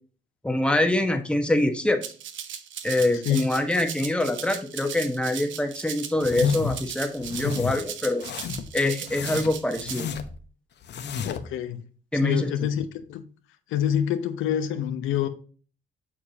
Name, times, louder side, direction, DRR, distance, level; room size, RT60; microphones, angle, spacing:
voice 1, 0.4-2.0 2.8-8.3 8.7-10.1 12.1-12.5, left 1 dB, 5° left, 1.3 m, -24 dB
Rattle (instrument), 2.0-10.0, right 9 dB, 70° right, 1.0 m, -38 dB
sound 1, 6.2-6.8 7.2-7.8 8.2-8.7 9.1-10.4 10.8-11.5, left 7 dB, 60° left, 0.9 m, -30 dB
voice 2, 11.2-11.8 12.2-13.2 13.7-15.3, left 9 dB, 90° left, 0.8 m, -26 dB
7.3 x 6.5 x 2.8 m
cardioid pair, 90°, 20 cm